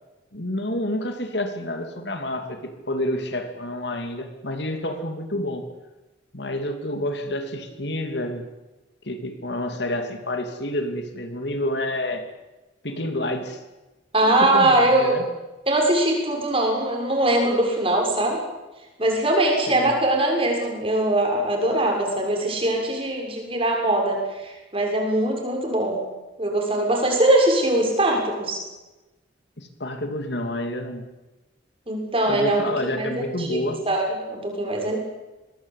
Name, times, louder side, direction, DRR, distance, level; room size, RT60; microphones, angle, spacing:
voice 1, 0.3-5.7 6.3-8.4 9.0-12.3 12.8-13.6 14.2-15.2 19.7-19.9 29.6-31.0 32.3-33.8, left 1 dB, 65° left, 6 dB, 3.0 m, -29 dB
voice 2, 14.1-15.1 15.7-18.4 19.0-26.0 26.4-28.6 31.9-33.6 33.9-35.0, right 1 dB, 30° right, 1 dB, 6.8 m, -22 dB
24.5 x 19.5 x 8.6 m, 1.1 s
head